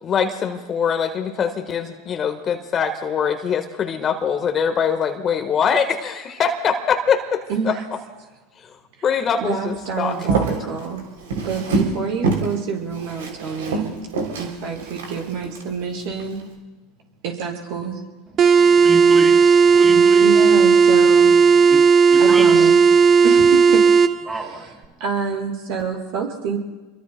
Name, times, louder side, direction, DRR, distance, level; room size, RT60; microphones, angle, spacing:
voice 1, 0.0-7.7 9.0-10.1, left 7 dB, 35° left, 6 dB, 1.4 m, -23 dB
voice 2, 7.5-7.8 9.0-11.0 11.4-14.0 14.4-16.4 17.2-18.1 20.2-21.4 22.2-22.8 23.2-23.8 25.0-26.6, right 5 dB, 60° right, 0 dB, 5.6 m, -27 dB
Walk footsteps, 10.1-12.0 12.2-12.5 12.9-15.6 16.1-16.4, right 3 dB, 80° right, 3.1 m, -25 dB
voice 3, 18.3-20.4 21.7-21.8 22.1-22.7 24.3-24.7, right 3 dB, 10° right, 0 dB, 5.9 m, -30 dB
sound 1, 18.4-24.1, right 5 dB, 40° right, 0.9 m, -13 dB
28.5 x 23.0 x 2.2 m, 1.2 s
hypercardioid pair, 90°, 0 cm